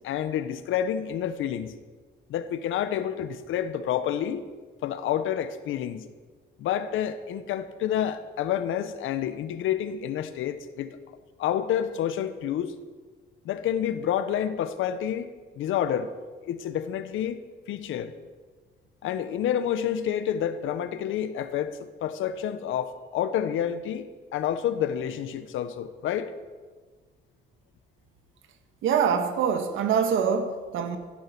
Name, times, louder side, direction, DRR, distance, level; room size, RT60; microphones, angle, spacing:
voice 1, 0.0-1.7 2.3-4.4 4.8-6.1 6.6-11.0 11.4-12.7 13.4-16.1 16.4-17.4 17.7-18.1 19.0-26.3, left 9 dB, 85° left, 12 dB, 1.1 m, -29 dB
voice 2, 28.8-31.0, right 7 dB, 85° right, 8 dB, 1.6 m, -24 dB
15.5 x 10.5 x 6.0 m, 1.4 s
cardioid pair, 90°, 20 cm